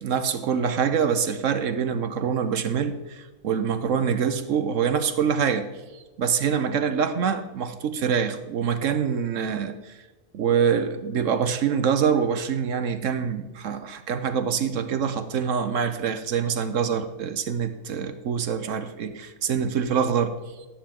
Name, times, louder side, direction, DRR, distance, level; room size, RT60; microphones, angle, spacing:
voice 1, 0.0-5.7 5.9-10.0 10.3-20.3, right 7 dB, 60° right, 10 dB, 1.1 m, -25 dB
11.5 x 10.0 x 3.7 m, 1.2 s
omnidirectional pair, 1.6 m